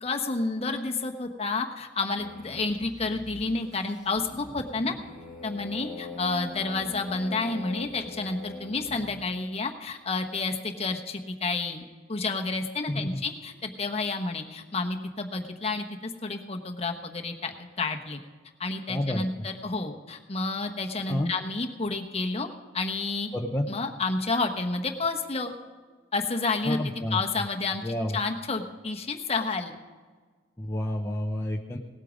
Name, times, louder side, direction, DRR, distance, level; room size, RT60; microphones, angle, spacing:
voice 1, 0.0-4.9 5.4-11.8 12.1-18.2 18.6-23.3 23.7-25.5 26.1-26.8 27.1-29.8, left 3 dB, 35° left, 4 dB, 1.1 m, -30 dB
sound 1, 2.2-9.2, left 2 dB, 5° right, 2.8 m, -42 dB
voice 2, 12.9-13.2 18.9-19.5 21.1-21.3 23.3-23.7 26.6-27.2 27.8-28.2 30.6-31.8, left 1 dB, 15° left, 0 dB, 0.7 m, -29 dB
18.5 x 8.4 x 5.2 m, 1.5 s
head